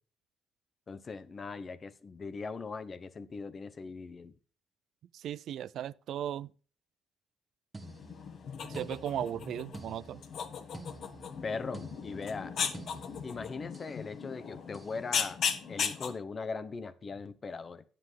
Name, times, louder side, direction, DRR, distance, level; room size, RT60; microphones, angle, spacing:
voice 1, 0.9-4.3 11.4-12.6 13.2-15.4 15.7-17.8, left 4 dB, 40° left, 0.9 m, -40 dB
voice 2, 5.1-6.5 8.7-10.2, right 10 dB, 75° right, 0.3 m, -36 dB
sound 1, 7.7-14.0 14.7-15.0, right 3 dB, 20° right, 1.3 m, -51 dB
sound 2, 7.8-16.1, left 7 dB, 65° left, 1.4 m, -37 dB
9.7 x 7.7 x 4.8 m
cardioid pair, 90°, 0 cm